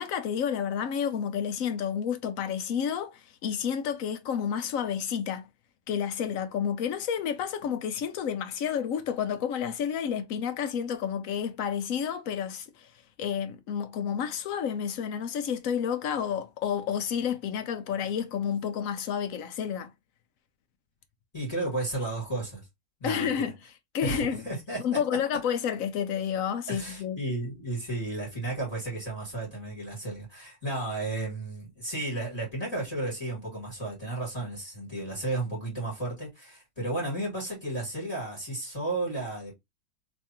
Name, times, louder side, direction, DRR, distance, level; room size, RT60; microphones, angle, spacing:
voice 1, 0.0-5.5 5.9-12.9 13.2-19.9 23.0-23.6 23.9-24.4 24.8-27.2, left 8 dB, 65° left, 0.9 m, -30 dB
voice 2, 21.3-22.6 23.0-23.5 24.0-25.0 26.7-39.5, right 2 dB, 25° left, 2.3 m, -33 dB
3.4 x 3.2 x 2.8 m
omnidirectional pair, 1.7 m